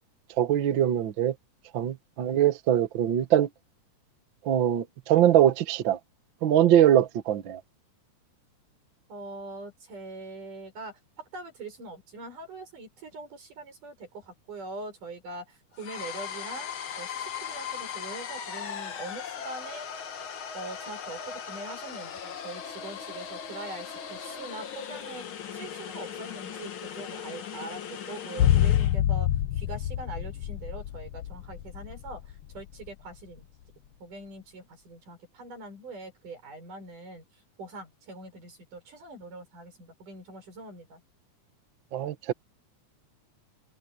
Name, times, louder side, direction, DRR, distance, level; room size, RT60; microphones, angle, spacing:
voice 1, 0.4-1.3 1.7-3.5 4.4-6.0 6.4-7.6 41.9-42.3, right 11 dB, 55° right, 1.4 m, -22 dB
voice 2, 9.1-19.9 20.5-29.3 29.5-33.5 34.0-41.0, right 2 dB, 85° right, 8.0 m, -43 dB
sound 1, 15.8-29.0, left 8 dB, 50° left, 1.9 m, -38 dB
sound 2, 28.4-32.6 32.9-33.0, left 12 dB, 80° left, 1.3 m, -26 dB
omnidirectional pair, 3.6 m